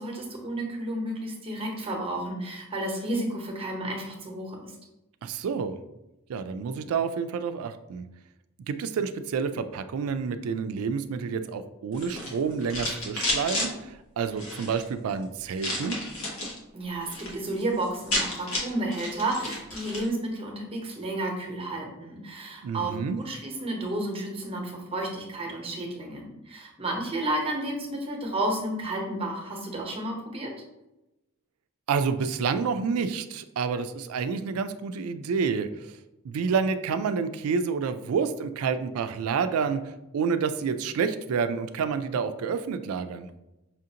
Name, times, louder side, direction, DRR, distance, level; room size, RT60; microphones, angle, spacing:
voice 1, 0.0-4.7 16.7-30.5, right 1 dB, 25° right, 0 dB, 0.9 m, -32 dB
voice 2, 5.2-5.8 6.3-8.1 8.7-16.0 22.6-23.2 31.9-36.0 36.2-39.8 40.1-43.3, right 5 dB, 85° right, 10 dB, 0.3 m, -29 dB
sound 1, 11.9-13.7 14.3-14.8 15.6-16.6 16.9-17.3 17.6-17.7 17.9-20.1, left 1 dB, 85° left, 1.2 m, -31 dB
5.6 x 2.5 x 2.8 m, 0.95 s
head